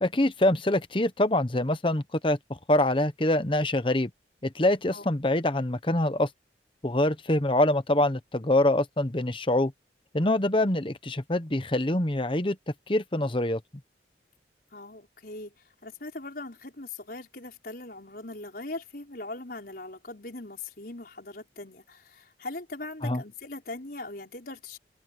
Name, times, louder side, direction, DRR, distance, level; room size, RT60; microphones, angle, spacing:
voice 1, 0.0-2.4 2.7-4.1 4.4-6.3 6.8-9.7 10.1-12.6 12.9-13.6 23.0-23.2, left 1 dB, 30° left, 1.0 m, -25 dB
voice 2, 14.7-15.5 15.8-24.8, left 2 dB, 55° left, 5.4 m, -40 dB
head